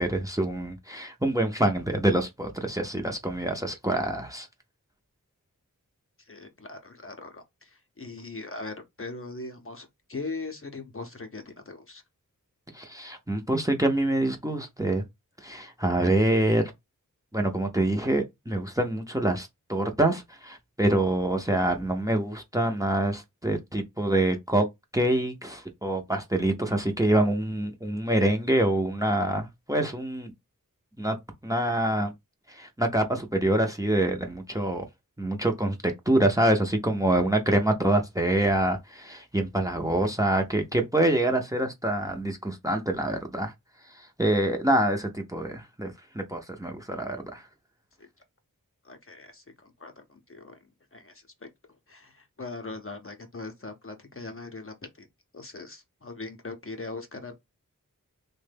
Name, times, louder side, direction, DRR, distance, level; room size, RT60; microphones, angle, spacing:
voice 1, 0.0-4.5 12.7-15.0 15.4-16.7 17.3-24.7 24.9-30.3 31.0-31.2 31.4-32.1 32.5-34.9 35.2-43.5 43.9-47.5, right 1 dB, 10° right, 0.6 m, -26 dB
voice 2, 6.3-12.0 48.0-48.1 48.8-50.6 50.9-51.5 51.9-55.1 55.3-57.3, left 3 dB, 40° left, 0.6 m, -40 dB
3.0 x 2.2 x 3.3 m
wide cardioid pair, 50°, 34 cm